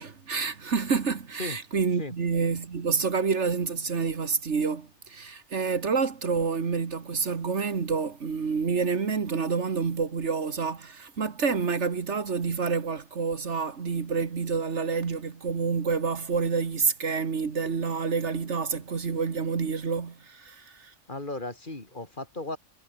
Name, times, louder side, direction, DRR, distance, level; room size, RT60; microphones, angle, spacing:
voice 1, 0.0-20.9, right 5 dB, 60° right, 1.9 m, -28 dB
voice 2, 21.1-22.6, left 2 dB, 40° left, 3.3 m, -35 dB
omnidirectional pair, 1.3 m